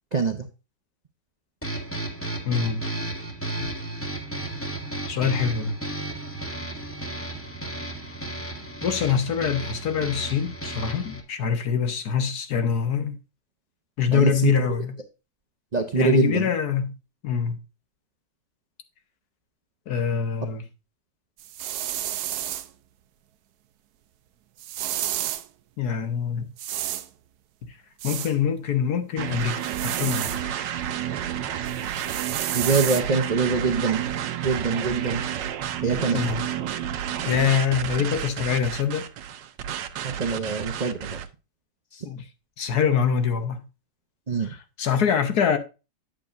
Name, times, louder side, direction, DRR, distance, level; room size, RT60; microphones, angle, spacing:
voice 1, 0.1-0.5 14.1-14.5 15.7-16.5 32.5-34.1 34.4-35.2 35.8-36.3 40.0-41.2 41.9-42.1 44.3-44.5, right 4 dB, 40° right, 0.6 m, -24 dB
sound 1, 1.6-11.2, right 2 dB, 10° left, 1.3 m, -34 dB
voice 2, 2.4-2.8 3.6-3.7 5.1-5.8 8.8-13.2 14.0-14.9 15.9-16.9 17.2-17.6 19.9-20.6 25.8-26.5 28.0-30.3 36.1-36.4 37.2-39.1 42.0-42.2 42.6-43.6 44.4-45.6, left 7 dB, 65° left, 1.5 m, -24 dB
sound 2, 21.4-22.7 24.6-25.5 26.6-27.1 28.0-28.3 29.6-30.4 31.7-33.0, right 12 dB, 70° right, 1.1 m, -31 dB
sound 3, 29.2-41.3, right 10 dB, 85° right, 1.5 m, -31 dB
8.6 x 8.4 x 2.5 m
omnidirectional pair, 1.9 m